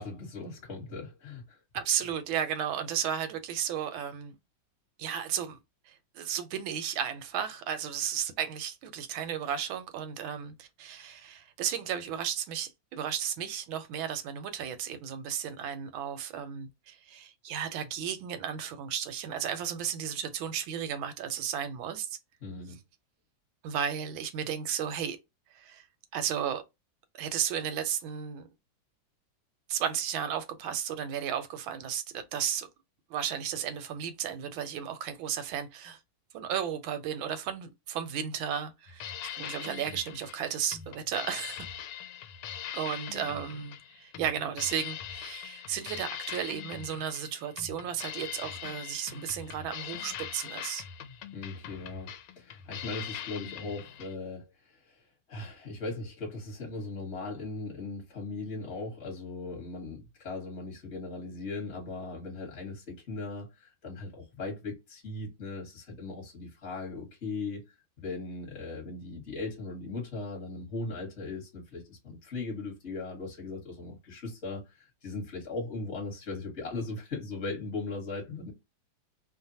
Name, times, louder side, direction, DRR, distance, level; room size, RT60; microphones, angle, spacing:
voice 1, 0.0-1.6 22.4-22.8 51.3-54.5 55.3-67.7 68.0-78.5, left 3 dB, 40° left, 1.2 m, -38 dB
voice 2, 1.7-4.4 5.0-5.6 5.9-22.2 23.6-25.2 25.5-25.8 26.1-26.6 27.2-28.5 29.7-32.7 33.1-36.0 36.3-41.7 42.7-50.8, right 9 dB, 85° right, 1.4 m, -34 dB
sound 1, 38.9-54.1, left 9 dB, 85° left, 1.4 m, -42 dB
3.2 x 2.1 x 2.7 m
omnidirectional pair, 2.2 m